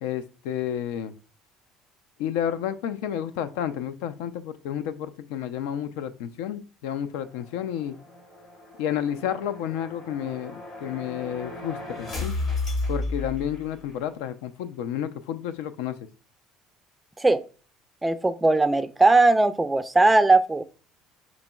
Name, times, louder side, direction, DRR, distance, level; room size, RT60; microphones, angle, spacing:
voice 1, 0.0-1.1 2.2-8.0 8.8-12.3 12.9-16.0, left 10 dB, 75° left, 11 dB, 0.3 m, -31 dB
sound 1, 7.2-14.0, left 2 dB, 55° left, 1.9 m, -34 dB
voice 2, 18.0-20.6, right 2 dB, 15° right, 12 dB, 0.3 m, -19 dB
5.1 x 3.0 x 2.2 m, 0.36 s
hypercardioid pair, 75°, 0 cm